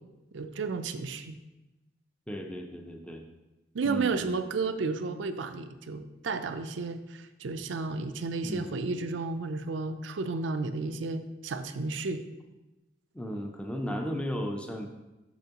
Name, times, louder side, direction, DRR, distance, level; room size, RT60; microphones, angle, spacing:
voice 1, 0.3-1.4 3.7-12.2, right 4 dB, 85° right, 9 dB, 0.5 m, -32 dB
voice 2, 2.3-3.2 3.8-4.2 8.4-8.8 13.1-14.9, equal, 5° left, 3 dB, 0.5 m, -35 dB
7.0 x 6.2 x 2.9 m, 1.0 s
head